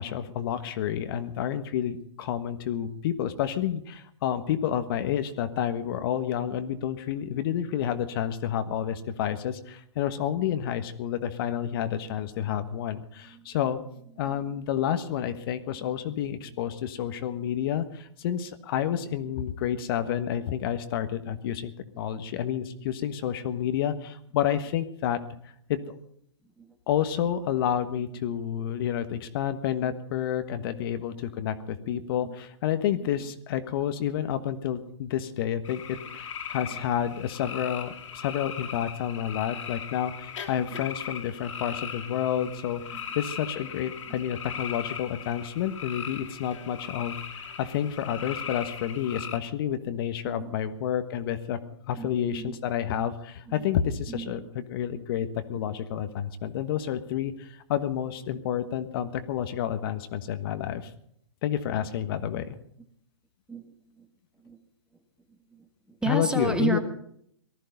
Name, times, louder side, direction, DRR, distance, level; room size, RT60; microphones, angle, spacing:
voice 1, 0.0-13.8 14.2-25.2 25.7-26.0 26.9-51.6 51.9-60.9 61.4-62.6 66.0-66.8, left 10 dB, 50° left, 10 dB, 1.4 m, -30 dB
voice 2, 21.9-22.5 26.6-26.7 29.8-30.0 31.1-31.2 31.9-32.3 33.0-33.1 42.9-43.0 44.1-44.2 50.2-50.6 52.0-52.6 53.0-53.1 53.5-53.7 54.1-54.5 55.5-55.6 63.5-64.1 64.4-64.6 65.5-66.8, right 3 dB, 5° right, 7 dB, 1.7 m, -34 dB
sound 1, 35.6-49.4, left 7 dB, 75° left, 3.1 m, -39 dB
19.0 x 14.0 x 5.4 m, 0.68 s
hypercardioid pair, 135°, 16 cm